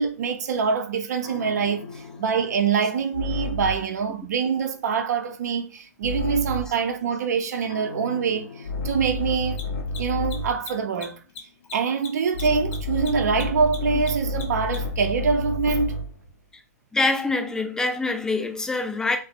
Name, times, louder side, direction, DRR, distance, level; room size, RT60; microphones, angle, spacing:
voice 1, 0.0-9.6 10.0-11.2 11.7-16.0, right 5 dB, 75° right, 0.5 m, -25 dB
sound 1, 1.2-4.0 6.0-6.8 7.7-10.7 12.3-16.2, left 2 dB, 75° left, 0.5 m, -31 dB
Mechanisms, 6.4-6.5 9.4-15.0, left 6 dB, 45° left, 0.8 m, -40 dB
voice 2, 16.9-19.2, left 3 dB, 5° left, 0.3 m, -25 dB
2.4 x 2.0 x 2.7 m
hypercardioid pair, 130°, 9 cm